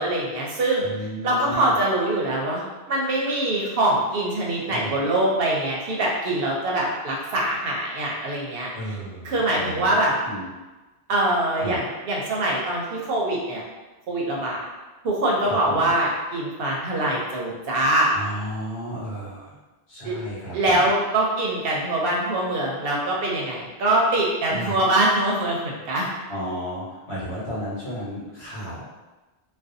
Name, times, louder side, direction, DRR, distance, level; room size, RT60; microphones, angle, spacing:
voice 1, 0.0-0.9 1.2-8.7 9.2-10.1 11.1-13.6 14.1-14.6 15.0-18.2 20.0-20.1 20.5-26.1, right 1 dB, 65° right, -3 dB, 0.7 m, -23 dB
voice 2, 0.8-1.8 4.7-5.0 8.7-10.0 10.2-10.5 11.6-11.8 15.4-15.9 18.1-19.5 19.9-20.9 24.5-24.9 26.3-28.9, equal, 70° left, -8 dB, 1.2 m, -33 dB
2.5 x 2.2 x 2.5 m, 1.2 s
omnidirectional pair, 1.1 m